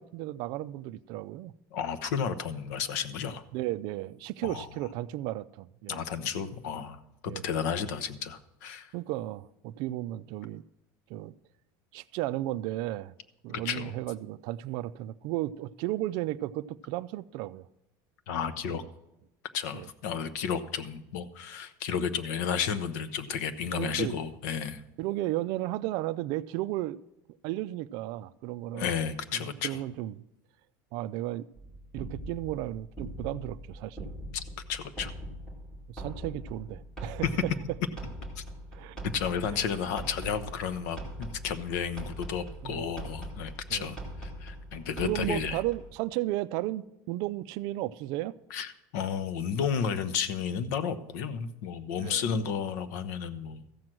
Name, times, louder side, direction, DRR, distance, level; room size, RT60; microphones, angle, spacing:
voice 1, 0.0-1.5 3.5-6.0 7.3-7.4 8.9-10.6 11.1-11.3 11.9-13.1 13.4-17.7 18.7-18.8 19.7-19.9 23.7-24.1 25.0-27.0 27.4-28.9 29.3-30.1 30.9-31.5 31.9-34.1 35.9-37.3 38.7-39.0 42.6-42.9 43.7-43.9 45.0-48.3 52.0-52.2, right 16 dB, 50° right, 0.4 m, -34 dB
voice 2, 1.7-3.4 4.4-4.7 5.9-8.9 13.5-13.9 18.3-18.8 19.5-24.8 28.7-29.8 34.3-34.4 34.7-35.1 37.3-37.4 38.4-38.5 39.1-45.6 48.5-53.6, left 7 dB, 85° left, 0.9 m, -32 dB
sound 1, 31.6-45.9, equal, 5° left, 2.4 m, -42 dB
14.0 x 7.7 x 6.0 m
cardioid pair, 180°, 9 cm